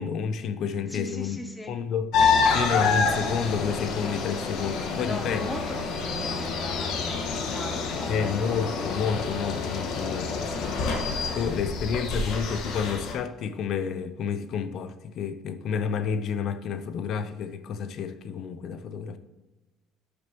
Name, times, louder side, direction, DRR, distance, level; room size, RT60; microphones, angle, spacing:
voice 1, 0.0-1.4 1.7-2.1 2.5-5.4 8.1-10.7 11.3-19.2, left 6 dB, 45° left, 0.6 m, -30 dB
voice 2, 0.9-1.7 4.9-8.4, left 1 dB, 10° left, 0.7 m, -38 dB
sound 1, 2.1-13.1, left 4 dB, 60° left, 1.4 m, -27 dB
12.0 x 6.7 x 3.0 m
cardioid pair, 175°, 0 cm